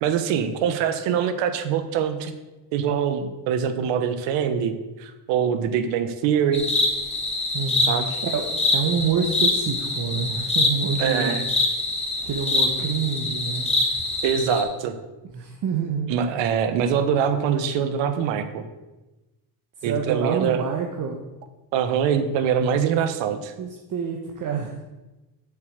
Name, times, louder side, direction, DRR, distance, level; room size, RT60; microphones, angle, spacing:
voice 1, 0.0-2.3 2.7-4.7 5.0-6.7 7.9-8.2 11.0-11.4 14.2-14.9 16.1-18.6 19.8-20.6 21.7-23.5, right 8 dB, 90° right, 9 dB, 1.2 m, -23 dB
sound 1, 6.5-14.6, left 2 dB, 15° left, 1.9 m, -25 dB
voice 2, 7.5-11.3 12.2-13.7 15.3-16.1 19.8-21.2 23.6-24.7, right 6 dB, 50° right, 2 dB, 1.3 m, -27 dB
7.8 x 7.4 x 6.6 m, 1.1 s
cardioid pair, 130°, 42 cm